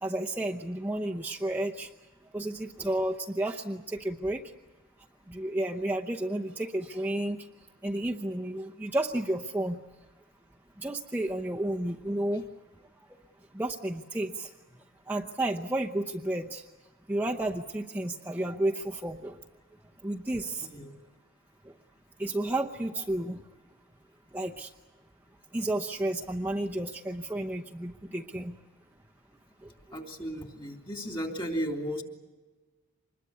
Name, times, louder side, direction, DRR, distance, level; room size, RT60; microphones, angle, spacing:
voice 1, 0.0-1.9 2.3-4.4 5.3-7.4 7.8-9.8 10.8-12.4 13.5-14.5 15.1-16.6 17.1-19.4 20.0-20.7 22.2-23.4 24.3-24.7 25.5-28.6, right 1 dB, 10° right, -1 dB, 0.8 m, -31 dB
voice 2, 29.9-32.0, equal, 25° left, 3 dB, 3.1 m, -34 dB
26.0 x 21.5 x 8.2 m, 1.2 s
head